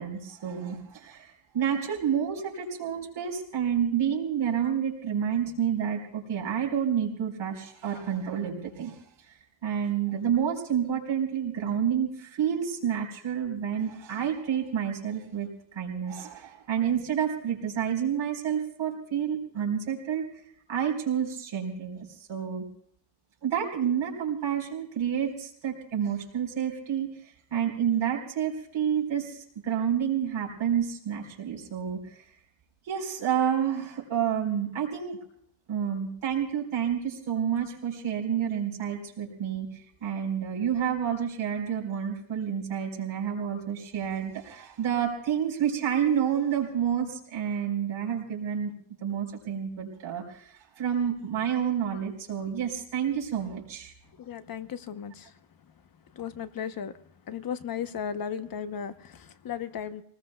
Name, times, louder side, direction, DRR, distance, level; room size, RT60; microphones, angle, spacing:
voice 1, 0.0-20.3 20.7-22.6 23.4-32.2 32.8-35.2 35.7-48.7 49.0-53.9, right 8 dB, 70° right, 0 dB, 4.4 m, -29 dB
voice 2, 54.2-55.3 56.1-56.9 57.3-60.0, left 8 dB, 45° left, 11 dB, 0.9 m, -35 dB
28.5 x 19.5 x 2.3 m, 0.66 s
cardioid pair, 140°, 48 cm